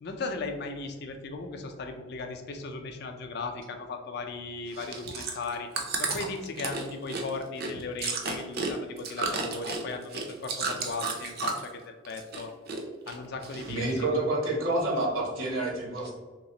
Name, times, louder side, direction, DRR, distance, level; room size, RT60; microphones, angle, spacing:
voice 1, 0.0-5.7 6.0-12.5 13.1-14.2 16.0-16.1, left 3 dB, 50° left, 5 dB, 0.4 m, -37 dB
Chewing mastication, 4.7-11.8 12.1-12.8 13.1-14.0 14.5-14.6, right 4 dB, 50° right, 0.5 m, -33 dB
voice 2, 13.7-16.1, right 2 dB, 75° right, -2 dB, 0.9 m, -28 dB
3.2 x 2.9 x 2.8 m, 1.4 s
head